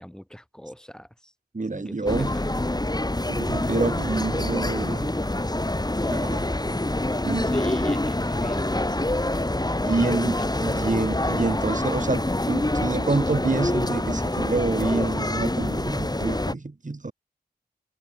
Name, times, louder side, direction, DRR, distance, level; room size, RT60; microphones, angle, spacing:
voice 1, 0.0-1.3 1.7-1.9 2.3-2.5 7.4-10.2, equal, 5° left, 4.5 m, -42 dB
voice 2, 1.5-2.4 3.3-5.1 6.1-6.5 7.2-7.5 9.8-17.1, right 3 dB, 50° right, 2.6 m, -27 dB
sound 1, 2.1-16.5, left 1 dB, 25° left, 5.5 m, -26 dB
wide cardioid pair, 60°, 17 cm